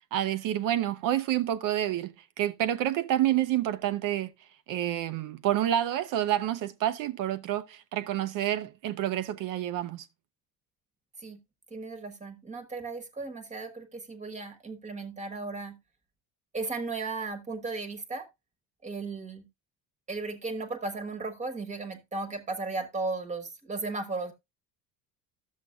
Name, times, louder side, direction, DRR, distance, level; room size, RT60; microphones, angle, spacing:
voice 1, 0.1-4.3 4.7-10.1, right 12 dB, 50° right, 0.7 m, -28 dB
voice 2, 11.7-15.8 16.5-18.3 18.8-19.5 20.1-24.3, right 3 dB, 15° right, 1.3 m, -35 dB
12.0 x 7.4 x 2.4 m
cardioid pair, 140°, 41 cm